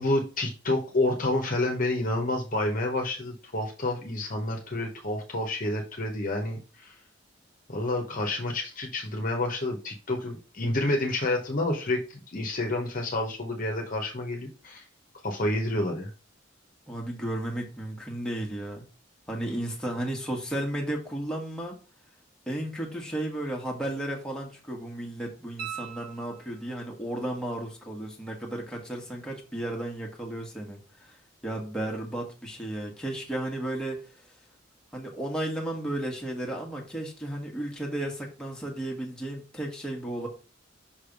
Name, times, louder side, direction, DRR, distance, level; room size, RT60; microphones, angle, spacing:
voice 1, 0.0-6.9 7.7-14.8 15.2-16.1, left 2 dB, 45° left, 2 dB, 1.0 m, -29 dB
voice 2, 16.9-18.9 19.3-21.8 22.5-34.4 34.9-40.3, right 1 dB, 5° left, -1 dB, 1.3 m, -34 dB
sound 1, 25.6-26.9 29.7-29.8, right 10 dB, 50° right, 1.1 m, -40 dB
5.6 x 3.3 x 5.1 m, 0.34 s
head